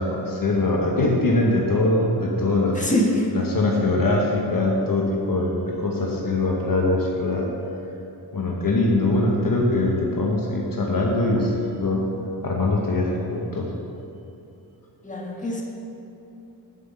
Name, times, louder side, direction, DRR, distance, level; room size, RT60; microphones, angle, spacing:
voice 1, 0.0-2.8 3.3-7.5 8.3-12.0 12.4-13.7, left 2 dB, 50° left, -1 dB, 1.1 m, -22 dB
voice 2, 2.7-3.3 15.0-15.6, left 1 dB, 20° left, -2 dB, 1.4 m, -24 dB
7.7 x 5.5 x 6.7 m, 2.9 s
wide cardioid pair, 100°, 41 cm